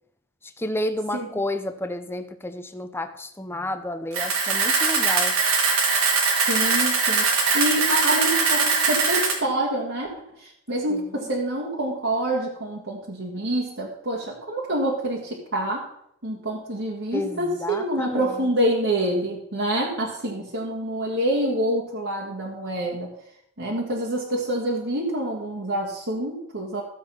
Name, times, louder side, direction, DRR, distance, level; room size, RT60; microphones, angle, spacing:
voice 1, 0.6-5.4 10.9-11.3 17.1-18.4, left 1 dB, 10° left, 9 dB, 0.7 m, -31 dB
Camera, 4.1-9.3, right 4 dB, 85° right, 2.4 m, -21 dB
voice 2, 6.5-10.1 10.4-15.9 16.2-23.1 23.6-26.8, right 1 dB, 60° right, -4 dB, 2.0 m, -27 dB
13.5 x 7.6 x 5.7 m, 0.70 s
head